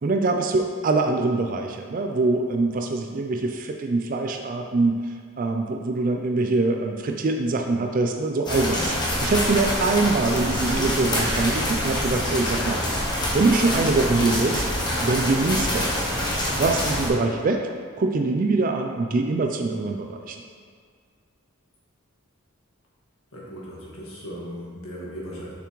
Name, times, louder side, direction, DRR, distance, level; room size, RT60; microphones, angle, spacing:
voice 1, 0.0-9.0 9.2-12.8 13.3-14.6 15.0-16.0 16.6-17.7 18.0-20.4, right 3 dB, 40° right, 3 dB, 0.3 m, -24 dB
sound 1, 8.5-17.1, left 1 dB, 20° left, 1.1 m, -25 dB
voice 2, 23.3-25.5, equal, 75° left, -5 dB, 1.7 m, -37 dB
6.9 x 5.9 x 3.1 m, 2.1 s
head